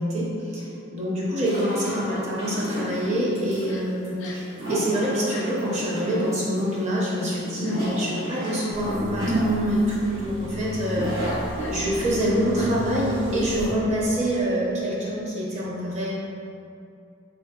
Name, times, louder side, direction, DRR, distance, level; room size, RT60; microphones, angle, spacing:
voice 1, 0.0-11.3 11.7-16.1, equal, 35° right, -5 dB, 0.6 m, -26 dB
sound 1, 1.4-13.6, right 1 dB, 80° right, 1.5 m, -32 dB
Crying sobbing, 3.7-3.8 4.2-4.5 5.2-5.5 6.1-6.3 7.2-7.9 8.5-8.6 9.2-9.5 9.9-10.1 10.5-10.7 11.2-11.8 12.6-12.7, left 4 dB, 60° left, 0.3 m, -44 dB
sound 2, 8.7-13.7, right 1 dB, 60° right, 1.1 m, -35 dB
3.7 x 3.0 x 2.2 m, 2.6 s
head